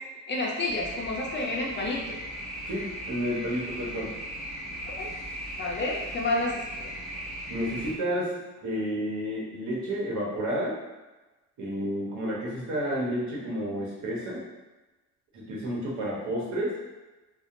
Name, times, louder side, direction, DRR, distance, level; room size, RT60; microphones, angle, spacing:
voice 1, 0.3-2.0 4.9-5.1 5.6-6.6, left 2 dB, 35° left, -2 dB, 0.5 m, -29 dB
sound 1, 0.7-7.9, equal, ahead, 1.3 m, -37 dB
voice 2, 2.7-4.2 7.5-8.3 8.6-10.8 11.6-14.5 15.3-16.7, equal, 60° right, -4 dB, 1.0 m, -31 dB
2.7 x 2.1 x 2.5 m, 1.1 s
cardioid pair, 95°, 33 cm